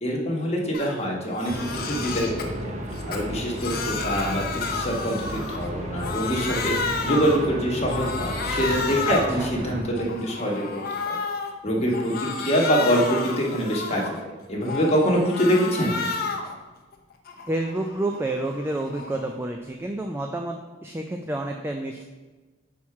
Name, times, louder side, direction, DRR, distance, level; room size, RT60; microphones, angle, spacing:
voice 1, 0.0-2.6 3.1-10.7 11.1-11.2 11.6-15.9, equal, 35° left, -2 dB, 1.3 m, -25 dB
Crying sobbing, 0.7-0.9 1.3-2.5 2.9-5.7 6.0-7.5 7.9-9.4 9.8-11.5 11.9-14.2 14.6-16.5 16.9-19.3, left 4 dB, 55° left, 0.7 m, -31 dB
sound 1, 1.5-9.8, equal, 40° right, 0.8 m, -34 dB
voice 2, 9.1-9.5 17.5-22.0, right 2 dB, 15° right, 3 dB, 0.3 m, -29 dB
5.8 x 4.4 x 4.7 m, 1.3 s
head